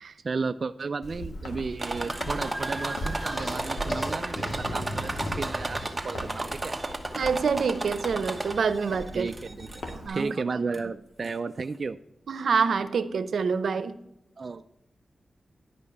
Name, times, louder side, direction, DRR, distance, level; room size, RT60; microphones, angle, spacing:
voice 1, 0.2-6.7 9.1-12.0 14.4-14.7, right 4 dB, 50° right, 8 dB, 0.3 m, -33 dB
Walk footsteps, 1.0-10.1, equal, 85° left, 1.8 m, -41 dB
sound 1, 1.8-8.8 9.3-9.9 10.7-10.8 11.2-11.3, right 2 dB, 20° right, 1.1 m, -33 dB
sound 2, 3.0-6.5, left 1 dB, 40° left, 1.3 m, -37 dB
voice 2, 7.1-9.3 10.0-10.6 12.3-13.9, right 5 dB, 85° right, 12 dB, 0.7 m, -27 dB
11.0 x 5.2 x 6.7 m, 0.85 s
wide cardioid pair, 115°, 0 cm